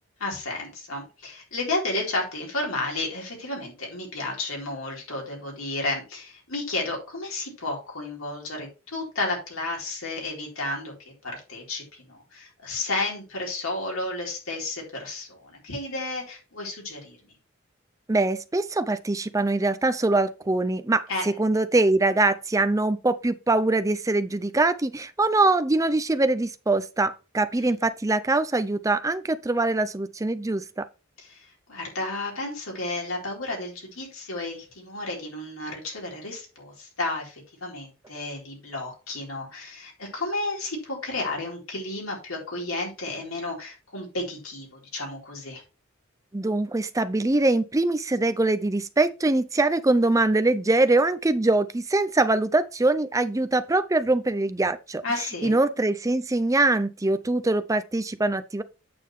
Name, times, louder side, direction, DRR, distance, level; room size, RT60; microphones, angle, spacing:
voice 1, 0.2-17.3 21.1-21.2 27.5-27.6 31.2-45.6 55.0-55.5, left 2 dB, 75° left, 4.1 m, -32 dB
voice 2, 18.1-30.8 46.3-55.0 55.4-58.6, right 2 dB, 15° right, 0.5 m, -23 dB
8.6 x 7.4 x 3.2 m
head